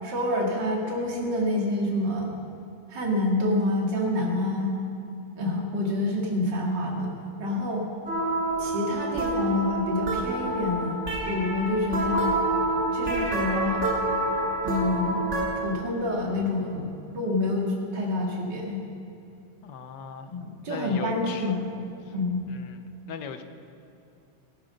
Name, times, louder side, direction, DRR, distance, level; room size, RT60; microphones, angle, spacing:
voice 1, 0.0-2.3 2.9-4.7 5.4-7.1 7.4-7.8 8.6-12.3 12.9-13.8 14.6-15.2 15.6-18.8 20.3-21.7 22.1-22.4, left 2 dB, 55° right, -2 dB, 2.9 m, -27 dB
sound 1, 8.1-15.5, right 1 dB, 35° right, 2.3 m, -27 dB
voice 2, 19.6-20.3 20.7-21.5 22.1-22.2 22.5-22.8 23.1-23.4, left 6 dB, 65° left, 8 dB, 1.3 m, -38 dB
17.5 x 11.5 x 5.3 m, 2.6 s
omnidirectional pair, 2.3 m